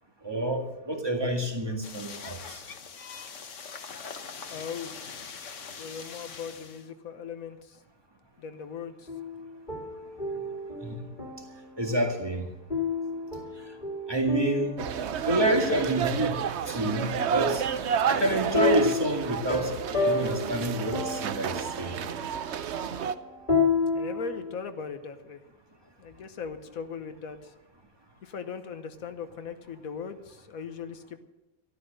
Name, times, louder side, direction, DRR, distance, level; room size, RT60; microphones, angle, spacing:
voice 1, 0.2-2.6 10.8-11.0 11.8-12.5 14.1-14.7 15.3-16.4 16.7-17.6 18.1-19.7 20.1-22.0, right 1 dB, 15° right, 2 dB, 2.0 m, -28 dB
sound 1, 1.8-6.9, left 6 dB, 60° left, 1.4 m, -42 dB
voice 2, 4.5-5.0 5.8-7.8 8.4-9.1 23.9-25.4 26.0-27.5 28.2-31.2, left 6 dB, 80° left, 9 dB, 1.5 m, -39 dB
sound 2, 9.1-11.8 12.7-16.1 18.5-24.6, left 3 dB, 35° left, 2.3 m, -31 dB
sound 3, 14.8-23.1, right 7 dB, 60° right, 0.9 m, -30 dB
13.5 x 12.5 x 6.5 m, 0.95 s
omnidirectional pair, 1.4 m